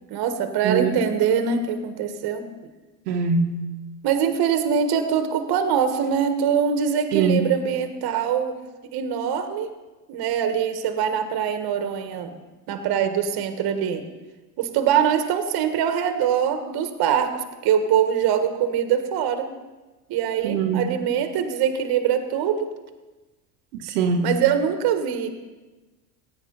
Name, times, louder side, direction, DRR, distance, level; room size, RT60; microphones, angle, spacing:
voice 1, 0.1-2.5 4.0-8.6 8.9-9.7 10.1-12.4 12.7-14.0 14.6-19.5 20.1-22.7 24.2-25.3, right 8 dB, 55° right, 8 dB, 1.6 m, -23 dB
voice 2, 0.6-1.0 3.1-3.6 7.1-7.5 20.4-20.8 23.7-24.3, right 5 dB, 75° right, 1 dB, 1.3 m, -22 dB
16.5 x 9.2 x 4.1 m, 1.2 s
hypercardioid pair, 80°, 46 cm